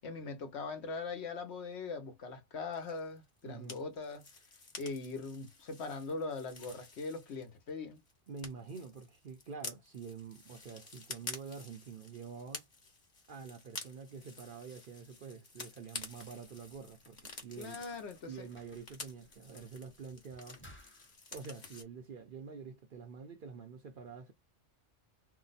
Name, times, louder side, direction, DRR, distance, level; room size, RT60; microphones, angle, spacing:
voice 1, 0.0-4.3 4.8-8.0 17.6-18.5, left 4 dB, 65° left, 1.1 m, -41 dB
sound 1, 2.7-7.7 8.0-21.8, left 3 dB, 40° left, 1.2 m, -50 dB
voice 2, 3.4-3.8 8.3-12.7 13.3-17.8 18.3-20.6 21.3-24.3, right 5 dB, 55° right, 0.6 m, -47 dB
sound 2, 16.1-21.1, equal, 10° left, 0.7 m, -61 dB
2.8 x 2.0 x 3.9 m
omnidirectional pair, 1.2 m